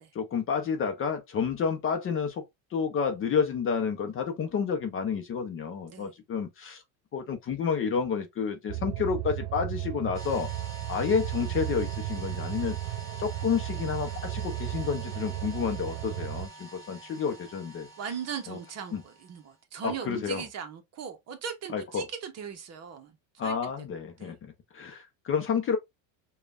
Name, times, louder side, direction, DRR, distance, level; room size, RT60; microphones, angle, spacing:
voice 1, 0.1-6.8 7.1-10.5 10.9-12.8 13.2-17.9 18.5-18.6 18.9-19.0 19.8-20.5 21.7-22.1 23.4-25.8, left 6 dB, 30° left, 0.7 m, -30 dB
sound 1, 8.7-16.5, right 14 dB, 85° right, 0.6 m, -35 dB
sound 2, 10.1-19.5, right 3 dB, 10° left, 1.6 m, -46 dB
voice 2, 18.0-23.2 23.4-23.6 24.2-24.3, right 7 dB, 40° right, 0.9 m, -38 dB
5.0 x 2.4 x 2.4 m
cardioid pair, 130°, 40 cm